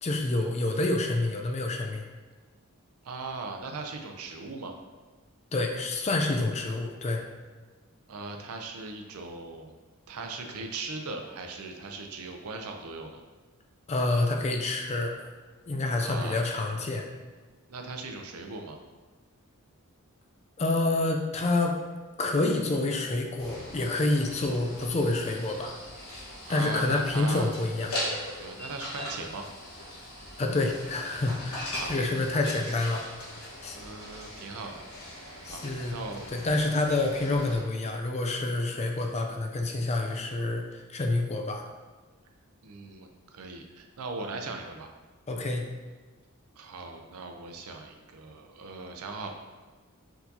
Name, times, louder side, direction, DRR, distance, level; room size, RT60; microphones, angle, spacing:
voice 1, 0.0-2.0 5.5-7.2 13.9-15.3 15.7-17.1 20.6-21.7 22.2-25.8 26.5-27.9 30.4-33.0 33.6-33.8 35.4-35.9 36.3-41.6 45.3-45.6, left 2 dB, 30° left, 2 dB, 0.4 m, -28 dB
voice 2, 3.0-4.7 8.1-9.7 10.1-13.2 16.0-16.4 17.7-18.8 26.5-27.5 28.4-29.4 31.7-32.0 33.7-34.8 35.5-35.6 35.9-36.3 42.6-44.9 46.6-49.3, right 3 dB, 90° right, 4 dB, 0.5 m, -39 dB
sound 1, 23.4-37.6, left 1 dB, 80° left, 1.4 m, -40 dB
4.5 x 3.9 x 2.7 m, 1.3 s
head